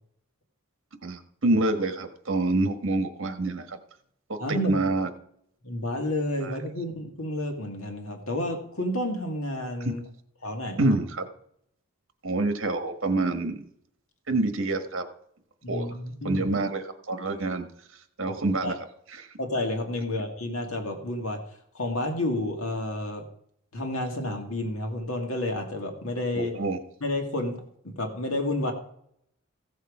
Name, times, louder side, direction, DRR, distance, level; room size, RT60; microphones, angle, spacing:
voice 1, 1.0-3.8 4.3-5.1 6.4-6.5 9.8-9.9 10.8-11.2 12.2-13.6 14.3-15.0 15.7-15.9 16.2-17.7 18.2-18.7 26.3-26.8, right 2 dB, 65° right, 7 dB, 1.4 m, -27 dB
voice 2, 4.4-4.8 5.6-10.0 10.4-11.0 15.6-16.4 18.3-18.7 19.4-21.4 21.7-23.2 23.7-26.5 27.0-27.6 27.8-28.7, left 1 dB, 75° left, 4 dB, 1.9 m, -30 dB
15.5 x 6.7 x 4.9 m, 0.70 s
head